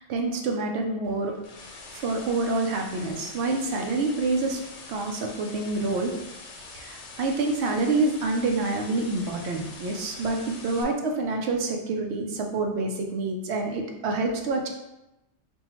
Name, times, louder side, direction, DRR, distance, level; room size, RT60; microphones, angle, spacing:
voice 1, 0.0-1.3 1.9-4.6 4.9-6.1 6.7-14.7, right 3 dB, 70° right, 2 dB, 0.8 m, -27 dB
sound 1, 1.0-10.8, left 3 dB, 80° left, 1.0 m, -44 dB
5.3 x 2.2 x 2.9 m, 0.93 s
omnidirectional pair, 1.2 m